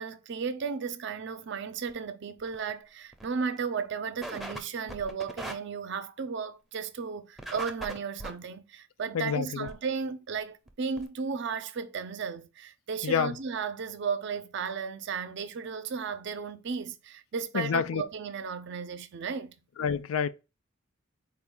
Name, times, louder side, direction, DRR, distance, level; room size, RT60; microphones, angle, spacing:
voice 1, 0.0-19.5, right 5 dB, 60° right, 0.5 m, -34 dB
sound 1, 1.9-2.0 2.4-2.7 3.1-3.3 3.6-3.7 4.2-4.6 4.9-5.5 7.4-8.3 9.7-9.8 10.4-10.5 10.7-10.8 11.0-11.1, right 1 dB, ahead, 0.5 m, -39 dB
voice 2, 9.1-9.7 13.0-13.4 17.5-18.0 19.8-20.3, left 7 dB, 85° left, 0.4 m, -28 dB
4.3 x 2.3 x 3.6 m
head